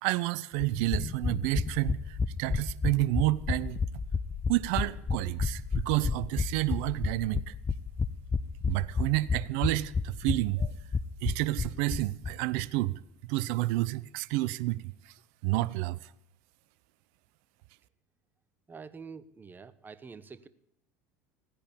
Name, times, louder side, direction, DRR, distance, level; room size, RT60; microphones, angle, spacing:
voice 1, 0.0-3.8 4.5-7.5 8.7-10.7 11.2-12.9 13.3-14.9 15.4-16.0, right 18 dB, 65° right, 0.7 m, -30 dB
sound 1, 0.6-12.3 12.6-12.7 12.9-13.0, left 4 dB, 20° left, 0.6 m, -31 dB
voice 2, 18.7-20.5, right 5 dB, 20° right, 1.0 m, -46 dB
15.5 x 10.0 x 8.7 m
hypercardioid pair, 80°, 8 cm